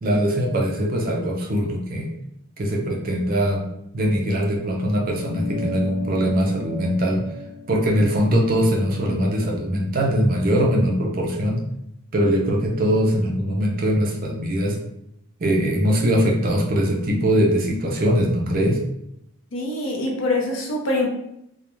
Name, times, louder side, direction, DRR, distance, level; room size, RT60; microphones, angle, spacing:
voice 1, 0.0-2.1 2.6-3.6 3.9-7.2 7.7-11.6 12.1-14.8 15.4-18.8, equal, 40° right, 0 dB, 0.4 m, -21 dB
sound 1, 5.1-9.9, left 2 dB, ahead, 0.7 m, -36 dB
voice 2, 19.5-21.1, left 2 dB, 60° left, 0 dB, 0.6 m, -24 dB
2.3 x 2.1 x 2.9 m, 0.78 s
head